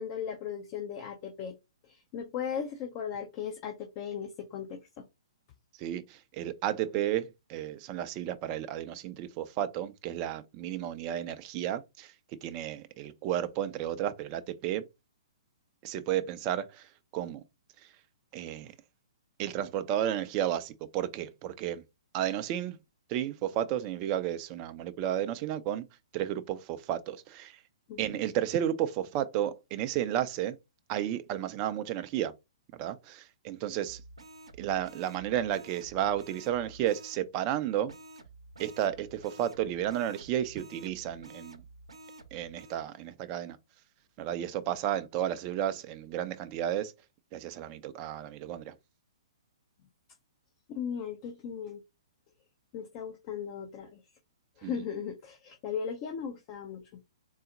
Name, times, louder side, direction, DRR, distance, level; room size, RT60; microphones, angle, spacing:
voice 1, 0.0-1.6 1.8-5.1 27.9-28.2 50.7-51.8 52.7-54.0 54.6-57.0, left 7 dB, 35° left, 0.6 m, -37 dB
voice 2, 5.8-12.1 12.4-14.8 15.8-17.4 18.3-18.7 19.4-21.8 22.1-22.8 23.1-25.9 26.1-27.6 28.0-30.6 30.9-32.3 32.8-34.0 34.6-37.9 38.6-41.6 42.3-43.6 44.2-46.9 47.3-48.7 54.6-54.8, right 11 dB, 30° right, 0.4 m, -32 dB
sound 1, 33.8-37.2 37.9-42.8, right 2 dB, 75° right, 0.7 m, -51 dB
3.9 x 2.0 x 3.8 m
figure-of-eight pair, 120°, 3 cm